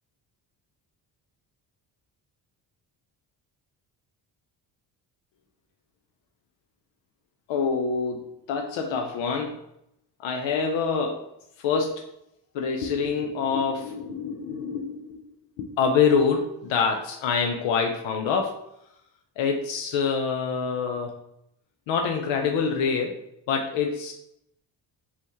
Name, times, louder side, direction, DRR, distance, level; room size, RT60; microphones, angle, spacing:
voice 1, 7.5-9.6 10.2-11.2 11.6-12.0 12.5-15.2 15.6-18.6 19.4-21.1 21.9-23.1 23.5-24.1, left 5 dB, 80° left, 2 dB, 0.7 m, -26 dB
5.5 x 3.0 x 3.0 m, 0.79 s
cardioid pair, 170°, 44 cm